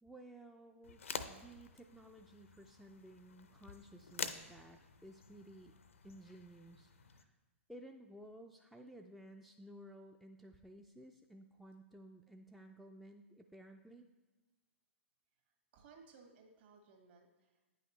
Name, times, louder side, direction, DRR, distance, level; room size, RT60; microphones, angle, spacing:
voice 1, 0.0-5.7 6.0-7.4 7.7-14.1, right 1 dB, ahead, 3 dB, 0.3 m, -56 dB
sound 1, 0.8-7.2, left 6 dB, 75° left, 0.5 m, -48 dB
voice 2, 15.7-17.7, right 4 dB, 50° right, 3 dB, 1.5 m, -61 dB
9.3 x 5.7 x 3.0 m, 1.2 s
figure-of-eight pair, 115°, 7 cm